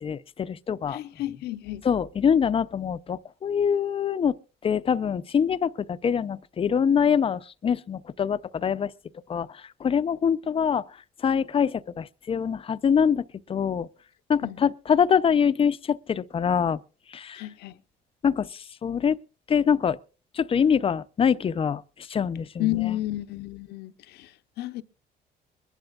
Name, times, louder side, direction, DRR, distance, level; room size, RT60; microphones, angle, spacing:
voice 1, 0.0-1.0 1.9-4.4 4.6-8.9 9.3-9.5 9.8-10.8 11.2-13.2 13.5-13.9 14.3-16.8 17.1-17.4 18.2-18.5 18.8-19.2 19.5-20.0 20.4-21.8 22.1-22.6, left 7 dB, 35° left, 0.6 m, -24 dB
voice 2, 0.9-1.8 14.4-14.6 17.3-17.8 22.6-24.8, left 16 dB, 80° left, 0.8 m, -31 dB
23.0 x 11.5 x 2.4 m
cardioid pair, 110°, 17 cm